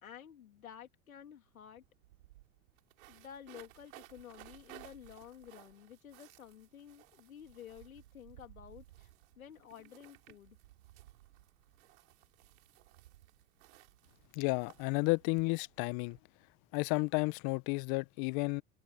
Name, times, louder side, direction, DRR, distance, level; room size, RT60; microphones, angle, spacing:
voice 1, 0.0-1.8 3.1-9.1 9.4-10.6, left 9 dB, 90° left, 2.1 m, -52 dB
sound 1, 1.4-1.5 1.8-16.2, right 17 dB, 75° right, 6.0 m, -59 dB
voice 2, 14.3-16.2 16.7-18.6, left 29 dB, 60° left, 1.1 m, -32 dB
hypercardioid pair, 80°, 41 cm